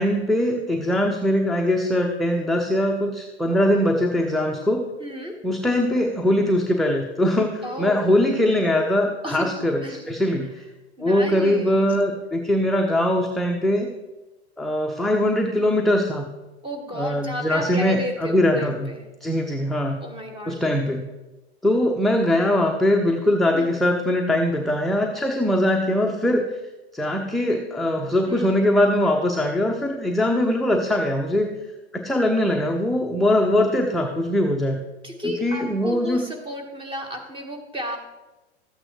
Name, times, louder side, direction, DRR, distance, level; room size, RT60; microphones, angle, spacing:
voice 1, 0.0-4.8 5.4-9.8 10.1-10.5 11.0-13.9 14.6-16.3 17.0-18.9 19.2-20.0 20.5-21.0 21.6-26.5 26.9-31.5 31.9-34.8 35.4-36.3, left 1 dB, ahead, 1 dB, 0.5 m, -21 dB
voice 2, 5.0-5.4 7.6-8.1 9.2-9.5 9.8-10.0 10.6-10.7 11.0-12.0 16.6-19.1 20.0-20.6 23.5-23.7 28.2-28.8 35.0-38.0, equal, 15° right, 4 dB, 1.5 m, -33 dB
13.0 x 8.8 x 3.1 m, 1.1 s
figure-of-eight pair, 95°, 34 cm